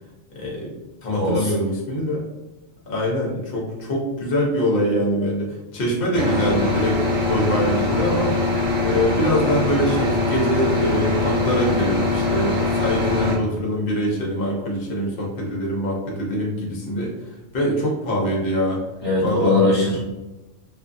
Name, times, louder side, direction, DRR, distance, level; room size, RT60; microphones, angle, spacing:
voice 1, 0.3-2.2 2.9-8.3 8.8-17.1 17.5-18.8 19.2-19.6, equal, 50° left, -2 dB, 0.8 m, -24 dB
voice 2, 1.2-1.5 19.0-20.0, left 2 dB, 10° left, -8 dB, 1.1 m, -20 dB
sound 1, 6.1-13.4, left 2 dB, 50° right, 1.0 m, -22 dB
2.6 x 2.3 x 2.5 m, 1.0 s
omnidirectional pair, 1.4 m